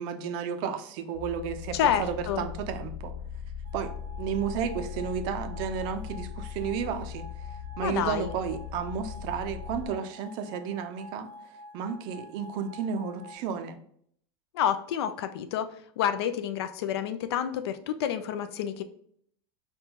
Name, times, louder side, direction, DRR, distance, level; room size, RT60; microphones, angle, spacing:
voice 1, 0.0-3.1 3.7-7.3 7.8-11.3 11.7-13.8, right 7 dB, 35° right, 8 dB, 0.4 m, -32 dB
sound 1, 1.1-9.9, left 8 dB, 40° left, 0.6 m, -39 dB
voice 2, 1.7-2.4 7.8-8.3 14.5-15.7 16.0-18.8, left 9 dB, 85° left, 9 dB, 0.4 m, -29 dB
sound 2, 3.6-13.3, left 1 dB, 75° right, 0.6 m, -48 dB
5.3 x 2.2 x 2.8 m, 0.65 s
supercardioid pair, 175°, 13 cm